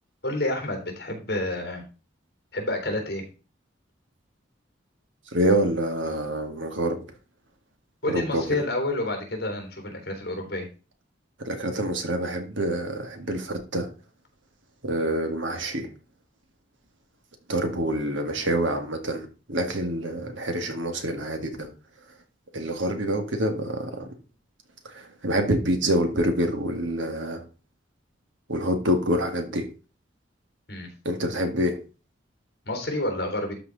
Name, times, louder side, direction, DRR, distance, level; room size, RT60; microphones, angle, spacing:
voice 1, 0.2-1.8 2.5-3.2 8.0-10.7 30.7-30.9 32.7-33.5, left 1 dB, 55° left, 2 dB, 3.4 m, -29 dB
voice 2, 5.3-7.0 8.1-8.6 11.4-13.9 14.8-15.9 17.5-21.7 22.5-24.1 24.8-27.4 28.5-29.7 31.1-31.8, right 1 dB, 80° right, 6 dB, 1.8 m, -26 dB
12.5 x 4.8 x 3.9 m, 0.34 s
head